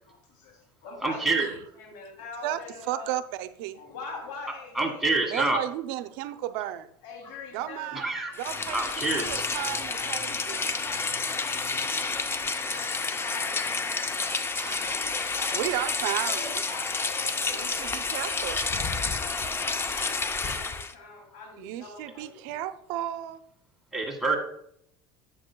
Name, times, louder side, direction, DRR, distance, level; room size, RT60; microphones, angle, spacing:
voice 1, 0.0-3.2 3.7-5.4 6.2-6.4 7.0-7.9 8.4-9.3 9.9-13.7 14.7-22.7, left 4 dB, 80° left, 2 dB, 2.8 m, -45 dB
voice 2, 1.0-1.5 4.8-5.6 7.9-8.3 8.7-9.3 23.9-24.4, right 3 dB, ahead, 0 dB, 1.8 m, -26 dB
voice 3, 2.4-3.8 5.3-6.9 7.5-8.1 8.4-10.6 14.6-15.1 15.5-16.6 17.5-18.6 21.6-23.4, right 13 dB, 80° right, 11 dB, 0.5 m, -34 dB
Rain, 8.3-20.9, left 4 dB, 20° left, 0.6 m, -30 dB
10.5 x 8.1 x 2.2 m, 0.70 s
supercardioid pair, 110°, 11 cm